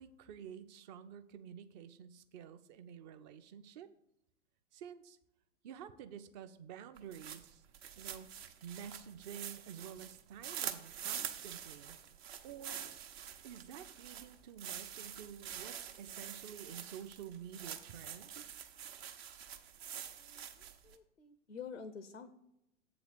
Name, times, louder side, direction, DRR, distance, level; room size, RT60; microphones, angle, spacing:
voice 1, 0.0-3.9 4.7-5.2 5.6-7.6 8.0-12.0 12.4-12.9 13.4-18.5, right 8 dB, 35° right, 10 dB, 0.6 m, -50 dB
sound 1, 7.0-21.0, right 9 dB, 60° right, 0.9 m, -46 dB
voice 2, 20.2-22.3, left 6 dB, 85° left, 11 dB, 0.6 m, -49 dB
7.8 x 3.9 x 6.7 m, 0.83 s
figure-of-eight pair, 100°, 36 cm